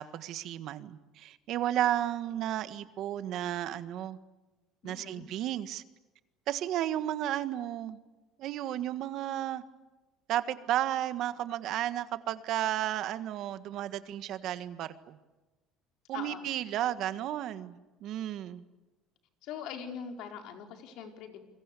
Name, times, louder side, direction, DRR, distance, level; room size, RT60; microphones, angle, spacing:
voice 1, 0.0-4.2 4.8-5.8 6.5-8.0 8.4-9.6 10.3-15.2 16.1-18.6, right 12 dB, 60° right, 12 dB, 1.6 m, -33 dB
voice 2, 4.8-5.3 16.1-16.4 19.4-21.4, left 7 dB, 70° left, 4 dB, 4.5 m, -42 dB
29.0 x 22.5 x 8.5 m, 1.1 s
cardioid pair, 125°, 0 cm